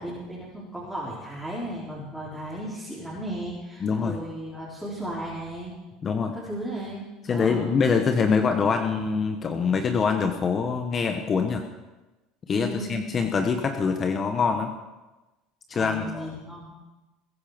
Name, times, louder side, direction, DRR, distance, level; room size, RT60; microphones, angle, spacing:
voice 1, 0.0-5.8 6.3-7.0 7.3-7.7 12.5-13.0 15.7-16.7, right 1 dB, ahead, -7 dB, 4.5 m, -35 dB
voice 2, 3.8-4.2 6.0-6.3 7.3-11.7 12.5-14.7 15.7-16.4, left 5 dB, 35° left, 5 dB, 1.3 m, -24 dB
21.0 x 10.5 x 5.3 m, 1.1 s
supercardioid pair, 110°, 0 cm